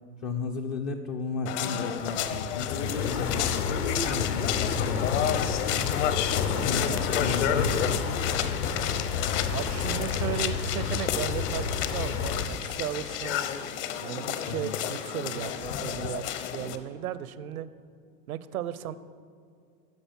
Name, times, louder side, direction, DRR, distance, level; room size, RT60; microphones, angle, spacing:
voice 1, 0.2-5.9 6.6-8.0 14.5-14.7, left 4 dB, 25° left, 2 dB, 0.4 m, -35 dB
sound 1, 1.5-16.8, left 9 dB, 50° left, 0.9 m, -31 dB
sound 2, 2.0-12.5, left 6 dB, 75° left, 1.1 m, -30 dB
voice 2, 9.5-13.4 14.0-16.2 16.5-17.7 18.3-19.0, right 11 dB, 65° right, 15 dB, 0.7 m, -35 dB
10.5 x 6.4 x 7.5 m, 2.3 s
figure-of-eight pair, 85°, 47 cm